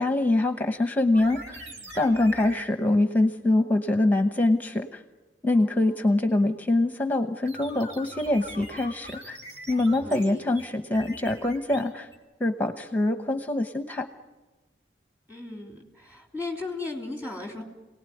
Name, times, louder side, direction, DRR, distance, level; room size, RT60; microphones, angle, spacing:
voice 1, 0.0-1.6 1.9-5.0 5.4-9.4 9.7-12.1 12.4-14.1, left 2 dB, 10° left, 7 dB, 1.0 m, -24 dB
sound 1, 1.1-2.6 7.5-12.2, equal, 75° right, 3.2 m, -43 dB
voice 2, 5.5-6.1 10.0-10.5 15.3-17.6, left 3 dB, 10° right, 1 dB, 3.3 m, -37 dB
28.0 x 19.0 x 9.3 m, 1.2 s
head